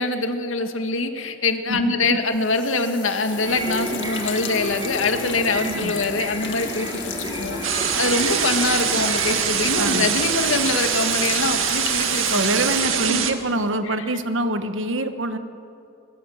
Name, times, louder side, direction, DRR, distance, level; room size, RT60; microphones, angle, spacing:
voice 1, 0.0-12.4 13.1-13.3 13.8-14.1, left 3 dB, 90° left, 6 dB, 2.1 m, -24 dB
voice 2, 1.7-2.2 5.6-5.9 9.8-10.1 12.3-15.4, right 1 dB, 70° right, 9 dB, 1.4 m, -25 dB
sound 1, 2.3-13.7, left 6 dB, 65° left, 2.2 m, -35 dB
sound 2, 3.2-10.8, right 1 dB, 20° right, 3.6 m, -32 dB
sound 3, 7.6-13.3, right 8 dB, 90° right, 2.0 m, -23 dB
24.0 x 23.5 x 7.3 m, 2.7 s
head